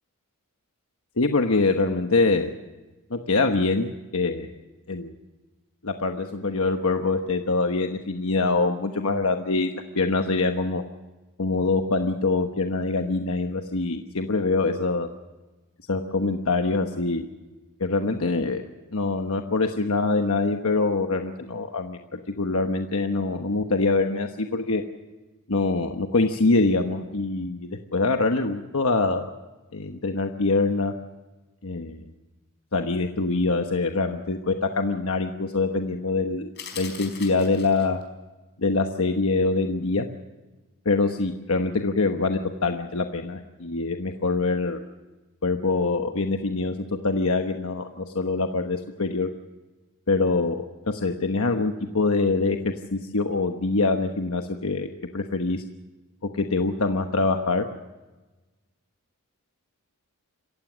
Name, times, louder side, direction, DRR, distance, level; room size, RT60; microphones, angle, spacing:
voice 1, 1.2-2.5 3.1-4.5 4.9-5.1 5.8-10.8 11.4-15.1 15.9-17.3 17.8-18.6 18.9-24.8 25.5-29.3 29.7-30.9 31.6-32.0 32.7-38.0 38.6-40.1 40.8-44.8 45.4-46.7 47.0-49.3 50.1-54.9 55.1-55.6 56.3-57.7, left 3 dB, 70° left, 5 dB, 1.2 m, -24 dB
sound 1, 36.6-38.0, left 7 dB, 55° left, 4.7 m, -40 dB
27.0 x 15.5 x 6.3 m, 1.2 s
head